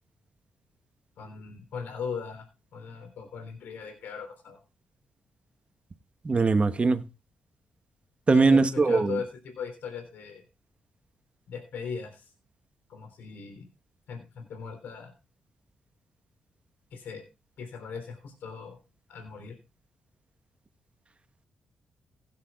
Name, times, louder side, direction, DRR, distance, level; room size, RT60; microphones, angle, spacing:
voice 1, 1.2-2.5 2.7-4.6 8.3-10.4 11.5-12.2 12.9-13.7 14.1-15.1 16.9-17.2 17.6-18.8 19.1-19.5, left 6 dB, 75° left, 3.5 m, -38 dB
voice 2, 6.2-7.0 8.3-9.2, right 4 dB, 35° right, 1.3 m, -21 dB
16.5 x 10.0 x 2.4 m
supercardioid pair, 45°, 3 cm